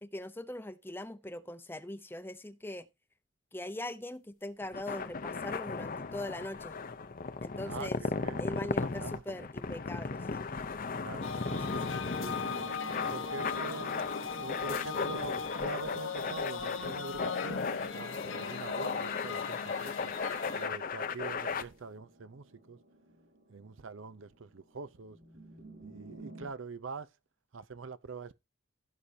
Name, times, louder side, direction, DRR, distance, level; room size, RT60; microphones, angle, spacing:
voice 1, 0.0-2.9 3.5-6.8 7.4-8.0 8.4-10.4 11.5-12.0, left 1 dB, 10° left, 0.7 m, -41 dB
sound 1, 4.6-21.6, left 4 dB, 45° left, 0.7 m, -36 dB
voice 2, 7.6-9.4 11.0-12.7 13.1-13.9 14.3-20.1 20.6-22.8 23.5-25.2 25.8-27.1 27.5-28.3, right 4 dB, 75° right, 0.6 m, -44 dB
sound 2, 11.2-20.7, left 6 dB, 80° left, 1.2 m, -39 dB
sound 3, 11.4-26.5, right 2 dB, 50° right, 4.6 m, -53 dB
16.0 x 6.7 x 2.7 m
head